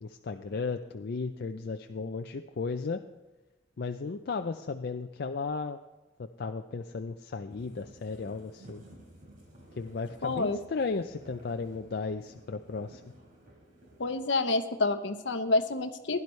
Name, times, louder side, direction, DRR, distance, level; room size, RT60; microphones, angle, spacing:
voice 1, 0.0-3.0 3.8-5.8 6.4-8.8 9.8-13.0, left 4 dB, 55° left, 6 dB, 0.4 m, -35 dB
sound 1, 7.5-14.3, right 1 dB, 45° right, 3.5 m, -54 dB
voice 2, 10.2-10.6 14.0-16.2, left 3 dB, 70° left, 9 dB, 0.9 m, -28 dB
16.5 x 11.0 x 3.2 m, 1.1 s
head